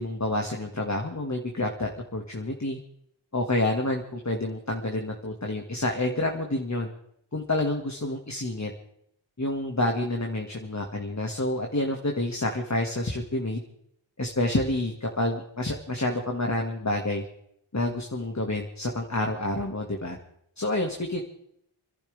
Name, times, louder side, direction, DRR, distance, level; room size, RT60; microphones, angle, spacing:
voice 1, 0.0-2.8 3.3-6.9 7.3-8.7 9.4-13.6 14.2-17.2 17.7-20.2 20.6-21.2, left 2 dB, 35° left, 1 dB, 2.0 m, -28 dB
29.5 x 11.5 x 3.5 m, 0.73 s
wide cardioid pair, 55°, 49 cm